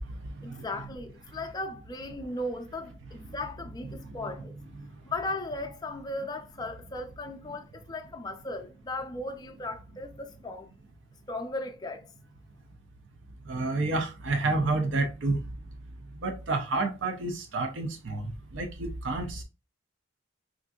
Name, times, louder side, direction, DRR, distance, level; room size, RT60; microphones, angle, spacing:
voice 1, 0.4-4.5 5.1-10.7 11.3-12.0, left 2 dB, 20° left, 0.4 m, -36 dB
voice 2, 13.5-15.4 16.2-18.3 18.5-19.4, right 2 dB, 70° right, 0.5 m, -29 dB
3.6 x 2.5 x 2.3 m
head